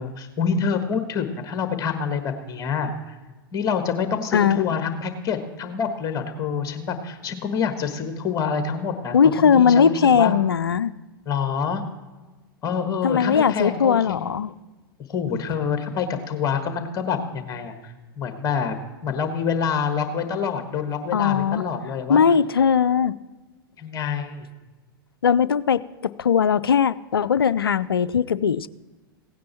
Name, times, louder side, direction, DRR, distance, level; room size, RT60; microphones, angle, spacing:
voice 1, 0.0-3.2 3.5-10.3 11.3-11.8 12.6-14.2 15.1-18.8 19.0-22.2 23.8-24.5, left 6 dB, 30° left, 8 dB, 1.4 m, -27 dB
voice 2, 9.1-10.9 13.0-14.5 21.1-21.6 22.1-23.2 25.2-28.7, left 7 dB, 80° left, 16 dB, 0.4 m, -19 dB
16.5 x 9.3 x 4.5 m, 1.2 s
figure-of-eight pair, 95°, 12 cm